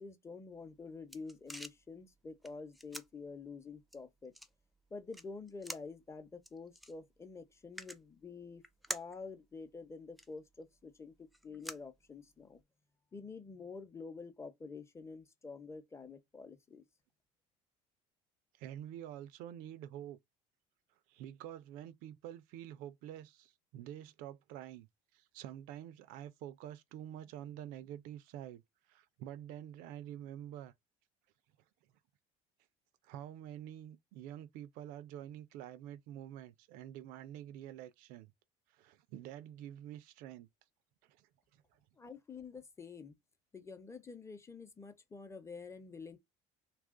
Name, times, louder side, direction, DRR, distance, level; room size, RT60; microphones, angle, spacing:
voice 1, 0.0-4.3 4.9-8.6 8.9-12.6 13.1-16.8 42.0-43.2 43.5-46.2, left 4 dB, 20° left, 0.7 m, -48 dB
sound 1, 0.5-12.6, equal, ahead, 0.4 m, -51 dB
voice 2, 18.6-20.2 21.1-24.9 25.1-28.6 28.9-30.7 33.0-38.3 38.7-40.5 41.0-41.8, right 11 dB, 75° right, 0.5 m, -48 dB
2.8 x 2.4 x 3.6 m
supercardioid pair, 110°, 14 cm